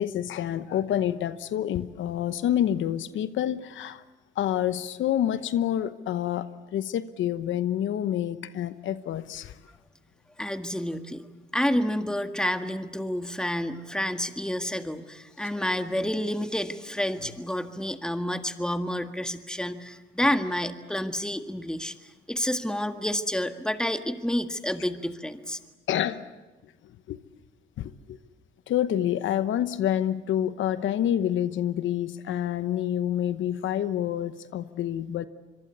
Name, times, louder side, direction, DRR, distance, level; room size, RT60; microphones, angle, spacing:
voice 1, 0.0-4.0 4.4-9.6 25.9-26.2 27.1-27.2 27.8-28.2 28.7-35.3, left 11 dB, 75° left, 13 dB, 1.0 m, -28 dB
voice 2, 10.4-11.2 11.5-25.6, left 1 dB, 5° left, 8 dB, 1.7 m, -29 dB
25.5 x 22.5 x 8.3 m, 1.2 s
cardioid pair, 90°, 20 cm